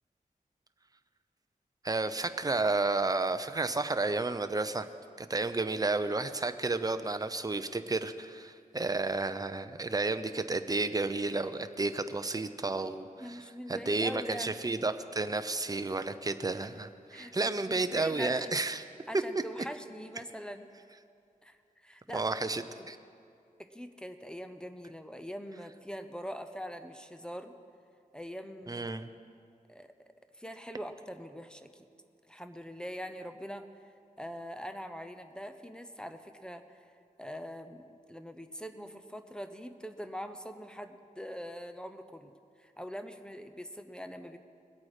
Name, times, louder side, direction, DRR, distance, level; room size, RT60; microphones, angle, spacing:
voice 1, 1.8-4.9 5.2-13.4 13.7-18.8 22.1-23.0 28.7-29.1, right 3 dB, 25° right, 10 dB, 0.7 m, -32 dB
voice 2, 13.2-14.6 17.1-18.6 19.1-20.7 21.4-22.3 22.6-22.9 23.6-27.5 28.1-28.9 29.7-29.9 30.3-31.9 32.3-33.7 34.2-36.9 37.2-42.3 42.6-44.4, equal, 5° left, 8 dB, 0.8 m, -43 dB
21.0 x 8.4 x 5.0 m, 2.4 s
wide cardioid pair, 65°, 15 cm